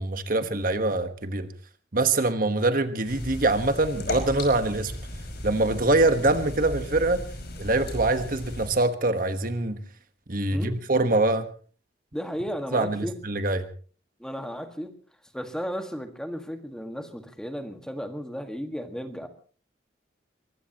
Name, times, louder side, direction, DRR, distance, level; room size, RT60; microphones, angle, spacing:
voice 1, 0.0-1.5 1.9-4.9 5.4-7.2 7.6-9.8 10.3-11.5 12.7-13.6, right 2 dB, 45° right, 9 dB, 1.3 m, -24 dB
sound 1, 3.0-8.7, left 1 dB, 55° left, 5.6 m, -35 dB
voice 2, 12.1-13.2 14.2-14.9 15.3-19.3, equal, 5° left, 6 dB, 1.7 m, -34 dB
23.5 x 21.0 x 3.0 m, 0.40 s
head